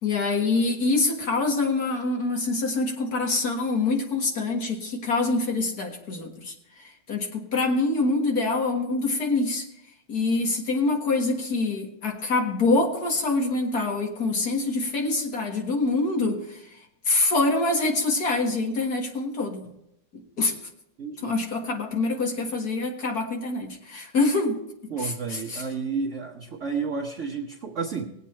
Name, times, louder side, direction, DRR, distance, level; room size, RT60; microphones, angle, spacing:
voice 1, 0.0-6.5 6.8-9.6 10.1-16.8 17.1-19.6 20.4-20.5 21.2-24.6 25.0-25.6, left 3 dB, 55° left, 2 dB, 2.1 m, -25 dB
voice 2, 21.0-21.3 24.9-28.1, right 5 dB, 50° right, -1 dB, 1.2 m, -31 dB
19.0 x 8.2 x 4.3 m, 0.81 s
omnidirectional pair, 2.0 m